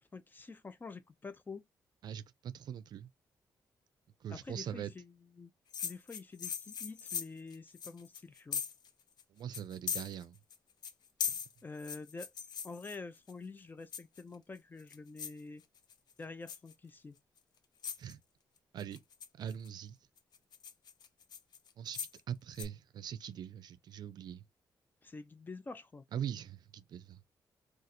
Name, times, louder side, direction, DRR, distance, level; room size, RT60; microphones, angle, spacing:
voice 1, 0.1-1.6 4.3-5.5 5.8-8.6 11.6-12.3 12.6-15.6 16.2-17.1 25.0-26.0, left 3 dB, 25° left, 0.5 m, -47 dB
voice 2, 2.0-3.1 4.2-4.9 9.3-10.4 11.3-11.4 18.0-18.2 18.7-19.0 19.3-20.0 21.8-24.4 26.1-27.2, right 9 dB, 70° right, 0.4 m, -42 dB
sound 1, 5.7-8.9 9.2-9.3 9.5-10.6 10.8-13.3 13.9-14.4 14.8-15.4 15.8-16.1 16.5-16.7 17.4-17.5 17.8-18.1 18.8-19.7 20.2-22.2 22.6-22.7, left 7 dB, 70° left, 0.5 m, -40 dB
2.6 x 2.4 x 4.1 m
cardioid pair, 115°, 7 cm